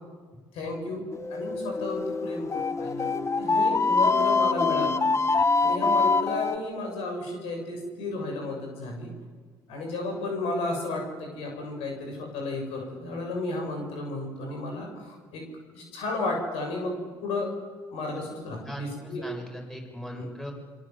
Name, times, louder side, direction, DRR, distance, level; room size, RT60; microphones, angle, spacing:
voice 1, 0.5-1.0 1.3-3.1 3.4-9.1 9.7-15.4 15.7-17.5 17.9-19.3 20.1-20.2, left 2 dB, 75° left, 2 dB, 7.1 m, -33 dB
sound 1, 1.1-6.6, left 4 dB, 30° left, 1.3 m, -24 dB
voice 2, 18.6-20.5, equal, 5° left, 1 dB, 7.5 m, -38 dB
27.0 x 23.5 x 7.9 m, 1.5 s
hypercardioid pair, 65°, 10 cm